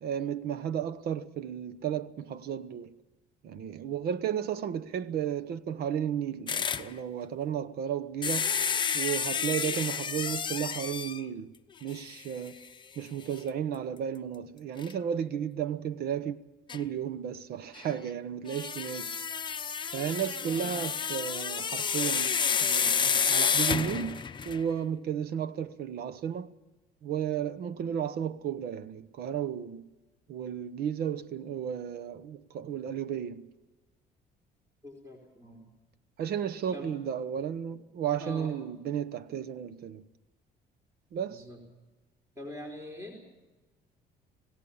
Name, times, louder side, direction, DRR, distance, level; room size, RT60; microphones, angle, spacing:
voice 1, 0.0-2.9 3.4-8.6 8.9-11.5 11.8-12.6 13.0-16.4 16.7-19.2 19.9-26.5 27.0-29.9 30.3-33.5 36.2-40.1 41.1-41.4, right 9 dB, 65° right, 1.1 m, -33 dB
sound 1, 6.5-6.9 8.2-11.2 11.9-12.0 12.5-12.6 14.8-14.9 16.7-16.8 18.5-24.7, left 6 dB, 30° left, 0.8 m, -30 dB
voice 2, 20.4-20.7 34.8-35.7 36.7-36.9 38.2-38.6 41.3-41.6 42.4-43.2, equal, 15° right, 4.3 m, -43 dB
26.5 x 17.5 x 7.2 m
cardioid pair, 110°, 17 cm